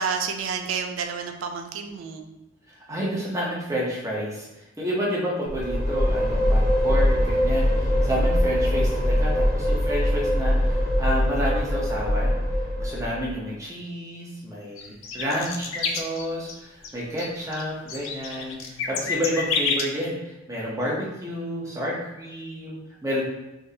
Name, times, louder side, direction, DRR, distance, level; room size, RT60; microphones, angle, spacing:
voice 1, 0.0-2.3, right 5 dB, 70° right, 5 dB, 0.4 m, -29 dB
voice 2, 2.7-12.4 12.8-23.2, equal, 15° right, -5 dB, 0.8 m, -30 dB
sound 1, 5.5-13.3, equal, 45° right, 1.0 m, -22 dB
sound 2, 14.8-16.5 16.8-16.9 17.2-19.8, left 5 dB, 70° left, 0.4 m, -29 dB
3.5 x 2.7 x 2.8 m, 1.0 s
head